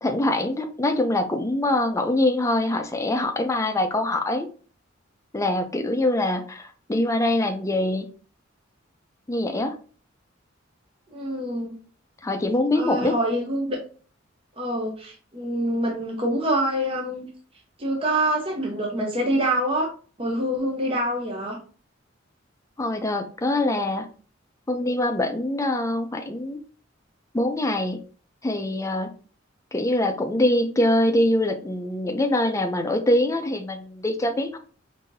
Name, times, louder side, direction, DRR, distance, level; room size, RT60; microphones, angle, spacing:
voice 1, 0.0-4.5 5.3-8.1 9.3-9.7 12.2-13.1 22.8-24.1 24.7-26.6 27.3-28.0 28.4-29.1 29.7-34.6, left 1 dB, 15° left, 6 dB, 0.5 m, -24 dB
voice 2, 11.1-11.8 12.7-13.8 14.6-17.3 17.8-19.9 20.2-21.6, right 1 dB, 30° right, -1 dB, 0.8 m, -26 dB
5.5 x 2.7 x 2.6 m, 0.40 s
head